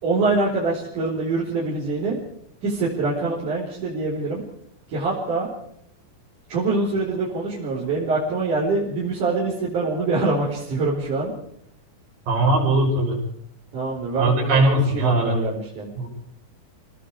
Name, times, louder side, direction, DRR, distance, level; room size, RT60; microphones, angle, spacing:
voice 1, 0.0-2.2 2.6-4.4 4.9-5.5 6.5-11.4 13.7-15.9, right 3 dB, 60° right, -5 dB, 6.0 m, -24 dB
voice 2, 12.3-13.2 14.2-15.4 16.0-16.1, right 2 dB, 80° right, -1 dB, 7.7 m, -20 dB
29.5 x 19.0 x 4.8 m, 0.69 s
omnidirectional pair, 3.9 m